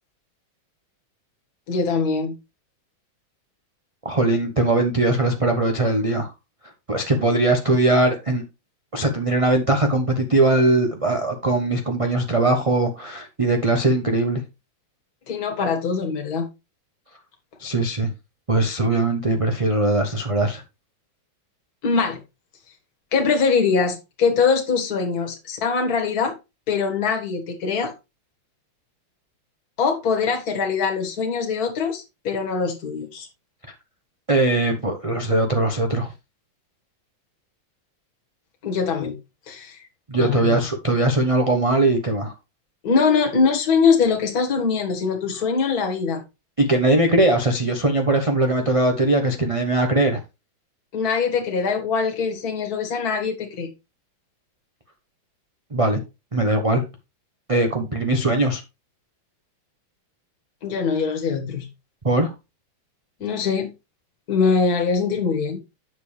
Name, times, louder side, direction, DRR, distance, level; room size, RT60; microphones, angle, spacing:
voice 1, 1.7-2.3 15.3-16.5 21.8-22.2 23.1-26.3 26.7-27.9 29.8-33.3 38.6-39.2 39.5-39.8 40.2-40.6 42.8-46.2 50.9-53.7 60.6-61.7 63.2-63.7 64.3-65.6, left 5 dB, 50° left, 2.1 m, -22 dB
voice 2, 4.0-6.3 6.9-8.4 8.9-14.4 17.6-18.1 18.5-20.6 34.3-36.1 40.1-42.3 46.6-50.2 55.7-56.0 56.3-56.8 57.5-58.6 62.0-62.3, right 2 dB, 30° right, 0.6 m, -20 dB
7.8 x 6.8 x 3.2 m
omnidirectional pair, 2.1 m